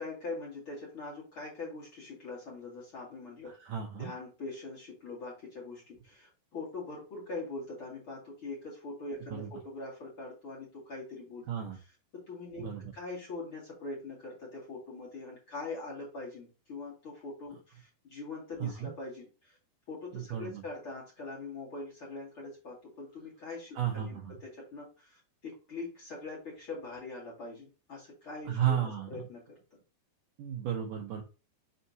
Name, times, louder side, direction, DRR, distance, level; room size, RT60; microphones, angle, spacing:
voice 1, 0.0-3.6 4.0-11.4 11.7-11.8 12.1-19.6 19.9-29.6, left 3 dB, 40° left, -3 dB, 2.3 m, -43 dB
voice 2, 3.5-4.1 9.3-9.5 11.5-11.8 12.6-12.9 18.6-18.9 20.1-20.6 23.8-24.3 28.5-29.1 30.4-31.2, right 9 dB, 90° right, 1 dB, 1.8 m, -33 dB
6.5 x 5.6 x 2.8 m, 0.31 s
omnidirectional pair, 5.0 m